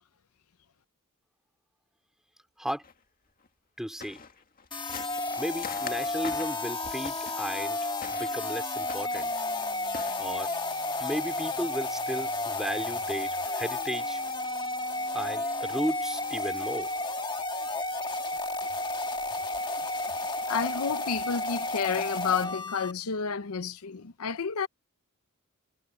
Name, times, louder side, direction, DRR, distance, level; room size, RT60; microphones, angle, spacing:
sound 1, 2.8-2.9 3.4-3.5 4.0-7.6 8.0-8.4 8.9-9.4 9.9-10.1, left 5 dB, 40° left, 1.9 m, -43 dB
voice 1, 3.8-4.2 5.4-7.8 8.1-9.3 10.2-10.6 11.0-14.2 15.1-16.9, equal, ahead, 3.5 m, -34 dB
sound 2, 4.7-22.9, left 2 dB, 20° left, 1.5 m, -32 dB
voice 2, 20.5-24.7, left 6 dB, 80° left, 0.7 m, -30 dB
head